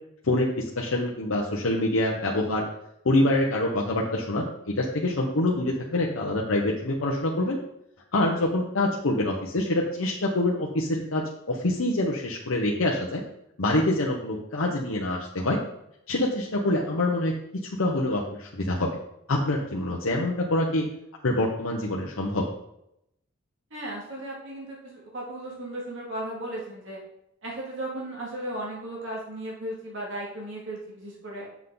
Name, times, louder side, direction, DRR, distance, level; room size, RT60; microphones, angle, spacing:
voice 1, 0.2-2.6 3.0-4.5 4.8-7.6 8.1-13.2 13.6-15.6 16.1-17.3 17.8-19.0 19.3-20.9 21.2-22.5, left 1 dB, 85° left, -2 dB, 0.9 m, -25 dB
voice 2, 23.7-27.0 27.4-31.5, right 1 dB, 70° right, -4 dB, 2.2 m, -36 dB
7.3 x 5.8 x 3.9 m, 0.79 s
head